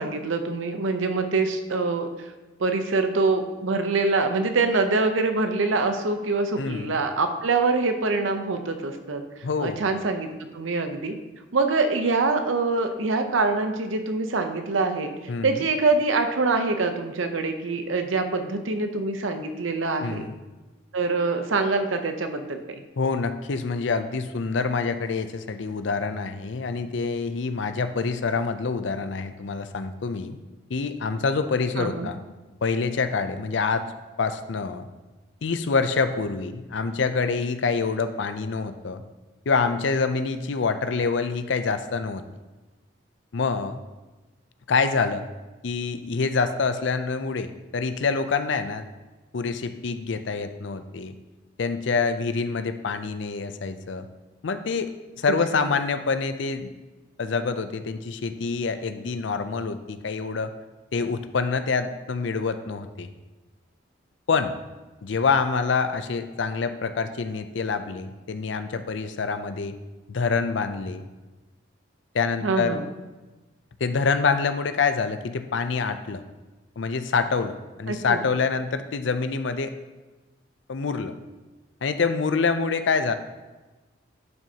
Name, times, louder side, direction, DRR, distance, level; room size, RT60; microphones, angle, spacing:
voice 1, 0.0-2.1 2.6-9.2 9.6-11.1 11.5-15.1 15.4-20.3 20.9-22.8 31.8-32.1 55.3-55.6 72.4-72.8 77.9-78.2, right 3 dB, 90° right, 7 dB, 0.8 m, -25 dB
voice 2, 6.6-6.9 9.4-9.8 15.3-15.6 20.0-20.4 23.0-30.4 30.7-32.2 32.6-33.8 34.2-34.9 35.4-39.0 39.5-42.2 43.3-43.8 44.7-45.3 45.6-48.9 49.3-51.1 51.6-54.1 54.4-54.9 55.2-56.7 57.2-60.5 60.9-63.1 64.3-64.5 65.0-69.8 70.1-71.0 72.1-72.8 73.8-76.2 76.8-79.7 80.7-81.1 81.8-83.1, left 4 dB, 70° left, 10 dB, 0.5 m, -26 dB
10.5 x 6.1 x 2.9 m, 1.2 s
head